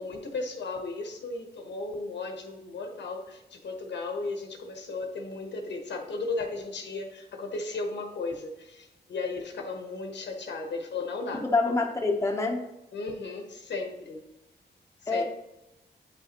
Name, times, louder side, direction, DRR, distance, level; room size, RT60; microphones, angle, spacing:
voice 1, 0.0-11.4 12.9-14.2 15.1-15.2, left 3 dB, 85° left, 3 dB, 1.1 m, -35 dB
voice 2, 11.3-12.7 15.1-15.2, left 3 dB, 15° left, 1 dB, 0.9 m, -26 dB
8.5 x 5.5 x 3.0 m, 0.93 s
wide cardioid pair, 105°, 18 cm